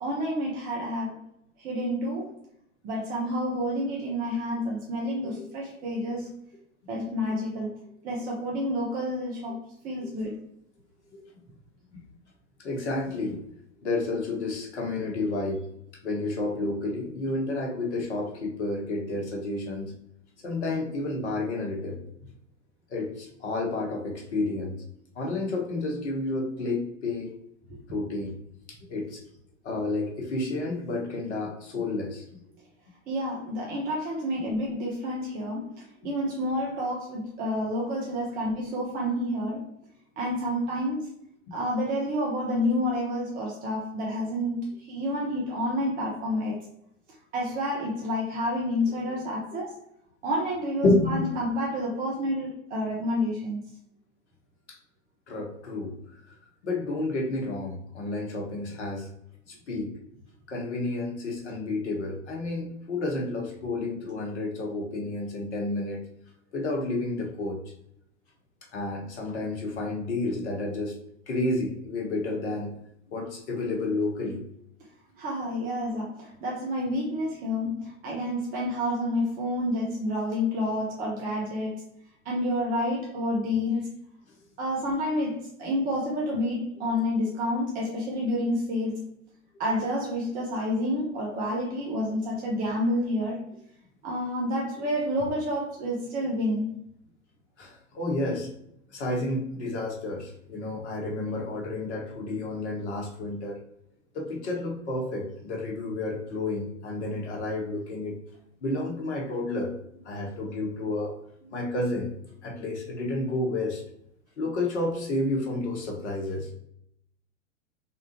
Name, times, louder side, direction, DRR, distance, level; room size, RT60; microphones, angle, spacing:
voice 1, 0.0-1.2 1.6-2.3 2.8-6.3 6.9-7.7 8.0-9.6 9.8-10.4 27.7-27.8 33.1-35.7 36.0-39.6 40.2-41.1 41.5-44.6 44.9-46.6 47.3-49.7 50.2-53.6 75.2-81.7 82.2-83.9 84.6-89.0 89.6-93.4 94.0-96.7, left 1 dB, 20° right, -3 dB, 0.7 m, -29 dB
voice 2, 12.6-13.4 13.8-15.6 16.0-19.9 20.4-22.0 22.9-24.7 25.2-27.3 27.9-28.3 28.9-29.2 29.6-32.2 50.8-51.2 54.7-54.8 55.3-55.9 56.3-56.4 56.6-59.1 59.7-59.9 60.5-66.0 66.5-67.6 68.7-70.9 71.3-72.7 73.1-74.4 97.6-98.5 98.9-103.6 104.1-108.2 108.6-109.7 110.0-111.1 111.5-112.1 112.4-113.8 114.4-116.5, left 2 dB, 55° left, 0 dB, 1.1 m, -30 dB
3.5 x 2.4 x 2.8 m, 0.74 s
figure-of-eight pair, 90°, 40 cm